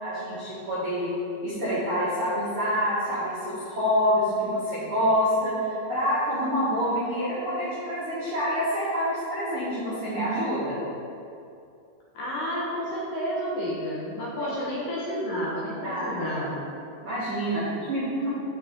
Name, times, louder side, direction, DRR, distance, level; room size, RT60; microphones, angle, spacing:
voice 1, 0.0-1.1 1.4-10.8 14.4-14.5 15.8-16.2 17.0-18.3, equal, 65° right, -11 dB, 1.3 m, -27 dB
voice 2, 12.1-16.6, equal, 65° left, -6 dB, 2.5 m, -30 dB
11.5 x 4.3 x 3.6 m, 2.6 s
omnidirectional pair, 5.1 m